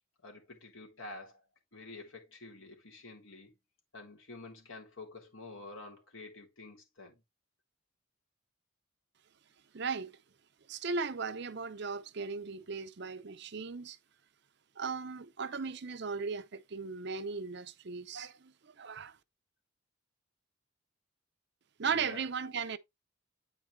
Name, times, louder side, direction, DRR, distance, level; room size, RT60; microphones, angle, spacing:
voice 1, 0.2-1.4 1.7-3.5 3.9-7.2 21.8-22.2, left 2 dB, 75° left, 3.1 m, -49 dB
voice 2, 9.7-10.1 10.7-14.0 14.8-19.2 21.8-22.8, right 5 dB, 55° right, 0.6 m, -37 dB
8.9 x 5.0 x 3.2 m
head